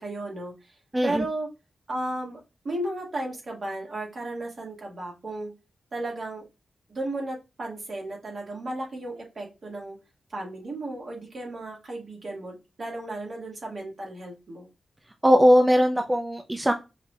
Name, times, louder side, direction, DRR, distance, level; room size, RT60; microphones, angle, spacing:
voice 1, 0.0-0.7 1.0-1.5 1.9-2.4 2.6-5.5 5.9-6.4 6.9-10.0 10.3-14.7, right 1 dB, 60° right, -1 dB, 2.0 m, -34 dB
voice 2, 0.9-1.2 15.2-16.7, equal, 20° right, 4 dB, 0.6 m, -19 dB
5.4 x 2.8 x 2.4 m, 0.26 s
supercardioid pair, 40°, 0 cm